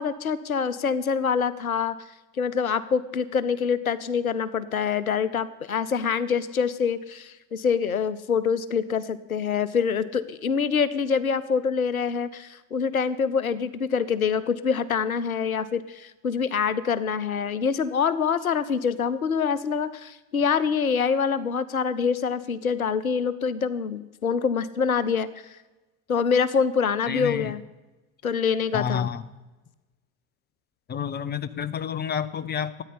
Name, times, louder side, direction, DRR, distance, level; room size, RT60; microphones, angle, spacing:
voice 1, 0.0-1.9 2.4-25.3 26.1-27.6 28.2-29.1, left 6 dB, 85° left, 16 dB, 0.7 m, -25 dB
voice 2, 27.1-27.5 28.7-29.2 30.9-32.8, left 8 dB, 25° left, 15 dB, 1.0 m, -29 dB
14.0 x 9.6 x 9.6 m, 1.1 s
figure-of-eight pair, 65°, 41 cm